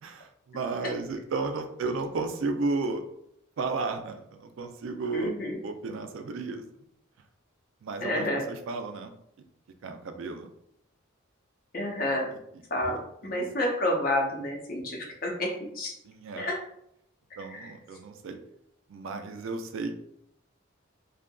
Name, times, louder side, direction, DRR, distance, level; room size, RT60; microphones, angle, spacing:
voice 1, 0.0-3.0 3.6-5.4 5.6-6.6 7.8-9.1 9.8-10.5 12.3-12.4 12.8-13.4 16.0-16.5 17.4-18.4 18.9-20.0, right 3 dB, 75° right, 7 dB, 0.3 m, -33 dB
voice 2, 5.1-5.6 8.0-8.4 11.7-12.3 12.7-15.9 16.4-16.6 17.5-17.7, left 1 dB, 45° left, 0 dB, 0.6 m, -29 dB
2.6 x 2.4 x 2.2 m, 0.74 s
head